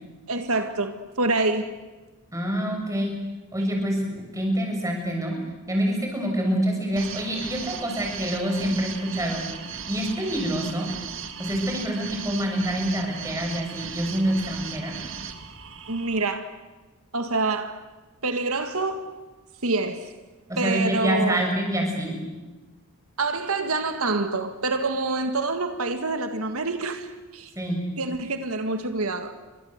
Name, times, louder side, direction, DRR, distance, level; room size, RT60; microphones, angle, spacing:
voice 1, 0.3-1.8 15.9-16.5 17.1-17.8 18.2-19.1 19.6-20.1 20.6-21.4 23.2-27.5 28.0-29.4, right 3 dB, 80° right, 1.8 m, -26 dB
voice 2, 2.3-3.1 3.5-5.4 5.7-9.4 9.9-10.9 11.4-14.9 20.5-22.2 27.6-27.8, equal, 15° right, 7.1 m, -26 dB
sound 1, 7.0-16.3, right 7 dB, 60° right, 2.2 m, -37 dB
29.0 x 25.0 x 8.1 m
head